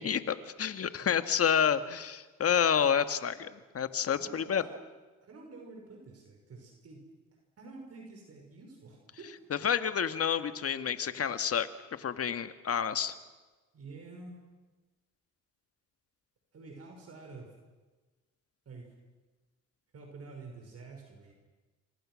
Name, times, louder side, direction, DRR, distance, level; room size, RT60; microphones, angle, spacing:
voice 1, 0.0-4.6 9.5-13.1, left 8 dB, 50° left, 10 dB, 1.7 m, -29 dB
voice 2, 4.2-4.7 5.2-7.0 7.6-9.3 13.7-14.4 16.5-17.5 18.7-19.0 19.9-21.3, right 3 dB, 55° right, 2 dB, 5.7 m, -48 dB
28.0 x 25.5 x 6.4 m, 1.3 s
cardioid pair, 90°, 30 cm